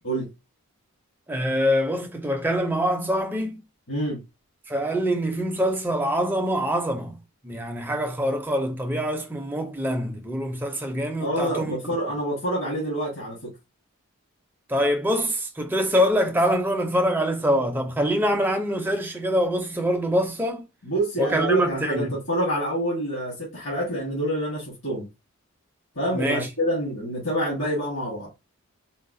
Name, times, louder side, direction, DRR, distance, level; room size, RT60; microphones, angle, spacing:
voice 1, 1.3-3.6 4.7-7.2 7.4-11.8 14.7-20.6 21.2-22.2 26.1-26.5, equal, 10° right, 0.5 m, -24 dB
voice 2, 3.9-4.2 11.2-13.5 20.8-25.1 25.9-28.3, right 1 dB, 65° left, 1.3 m, -27 dB
3.9 x 2.1 x 2.6 m
head